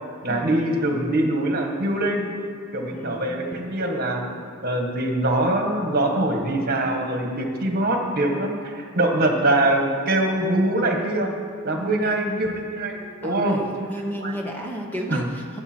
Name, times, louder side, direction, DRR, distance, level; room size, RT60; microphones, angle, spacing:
voice 1, 0.2-2.3 2.7-4.3 4.6-11.3 11.6-13.6 14.2-14.4 15.1-15.2, right 1 dB, 45° right, 2 dB, 1.5 m, -23 dB
voice 2, 2.9-3.9 13.2-15.6, equal, 10° left, 0 dB, 0.9 m, -34 dB
20.5 x 8.0 x 4.5 m, 2.4 s
head